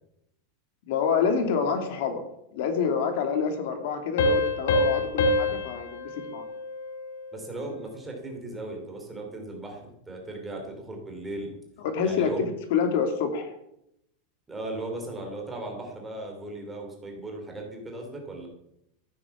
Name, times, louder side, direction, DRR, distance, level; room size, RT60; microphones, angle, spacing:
voice 1, 0.9-2.2 2.5-6.5 11.8-13.5, left 6 dB, 55° left, 6 dB, 2.5 m, -27 dB
Piano, 4.2-7.5, left 2 dB, 70° left, 2.2 m, -26 dB
voice 2, 7.3-11.5 12.0-12.4 14.5-18.5, right 2 dB, 10° right, 1 dB, 3.1 m, -37 dB
15.5 x 8.7 x 7.2 m, 0.79 s
supercardioid pair, 180°, 0 cm